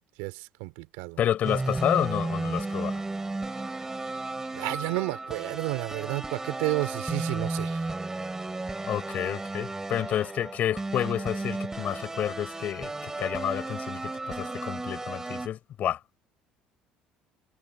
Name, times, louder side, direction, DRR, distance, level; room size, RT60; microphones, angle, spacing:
voice 1, 0.2-1.2 4.5-7.8, right 24 dB, 85° right, 3.2 m, -31 dB
voice 2, 1.2-3.0 8.8-16.0, left 11 dB, 55° left, 5.0 m, -30 dB
sound 1, 1.4-15.5, right 2 dB, 15° right, 4.9 m, -34 dB
supercardioid pair, 90°, 3 cm